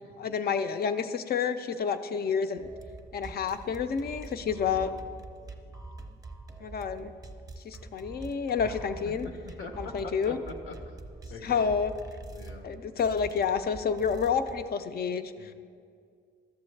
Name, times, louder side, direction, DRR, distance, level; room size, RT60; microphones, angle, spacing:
voice 1, 0.2-2.7 3.1-4.9 6.6-7.1 7.6-9.3 9.8-10.4 11.4-11.9 12.6-15.5, left 6 dB, 50° left, 10 dB, 0.5 m, -29 dB
sound 1, 2.6-14.7, right 2 dB, 15° right, 0.7 m, -45 dB
voice 2, 4.6-5.0 8.6-8.7 9.2-10.7 11.3-11.7 12.3-12.7 15.4-15.5, left 4 dB, 85° left, 5 dB, 0.9 m, -43 dB
12.5 x 6.9 x 3.2 m, 2.2 s
cardioid pair, 90°, 20 cm